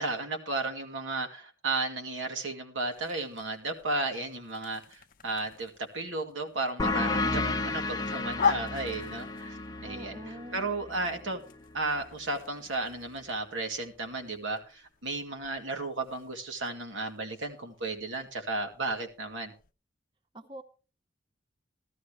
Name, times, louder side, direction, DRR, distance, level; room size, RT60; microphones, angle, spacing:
voice 1, 0.0-11.4 11.7-19.5, right 2 dB, 85° right, 4 dB, 2.3 m, -34 dB
sound 1, 2.9-19.7, left 6 dB, 45° left, 0.6 m, -41 dB
sound 2, 6.8-12.0, left 2 dB, 20° left, 0.9 m, -33 dB
voice 2, 9.8-10.7 20.3-20.6, right 1 dB, 25° right, 7 dB, 0.8 m, -44 dB
15.0 x 12.5 x 3.3 m, 0.33 s
head